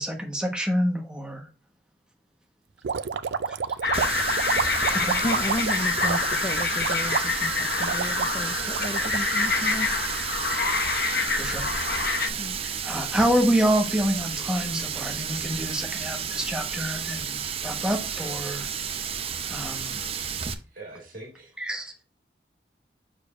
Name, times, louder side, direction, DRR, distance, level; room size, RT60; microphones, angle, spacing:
voice 1, 0.0-1.4 3.5-3.6 4.9-5.1 11.3-11.7 12.6-18.7 19.5-20.0 21.6-21.9, equal, 5° right, 1.2 m, -27 dB
sound 1, 2.8-10.2, right 6 dB, 75° right, 0.4 m, -30 dB
sound 2, 3.8-12.3, left 4 dB, 60° left, 0.8 m, -27 dB
Water tap faucet, 3.9-20.5, right 7 dB, 35° right, 0.6 m, -32 dB
voice 2, 5.2-9.9 12.4-12.6, left 2 dB, 25° left, 0.4 m, -33 dB
voice 3, 20.7-21.6, right 2 dB, 50° right, 2.0 m, -43 dB
6.6 x 6.5 x 2.5 m
head